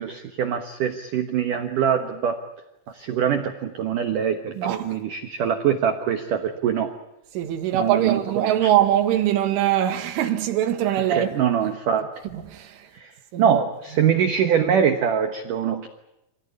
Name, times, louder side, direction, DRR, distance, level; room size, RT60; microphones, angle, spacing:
voice 1, 0.0-2.4 2.9-6.9 7.7-8.7 11.1-12.1 12.9-13.1 13.4-15.9, right 8 dB, 70° right, 2.0 m, -23 dB
voice 2, 4.6-4.9 7.3-11.3 12.3-12.9 13.3-13.5, right 11 dB, 85° right, 4.2 m, -22 dB
26.5 x 17.5 x 9.8 m
omnidirectional pair, 5.5 m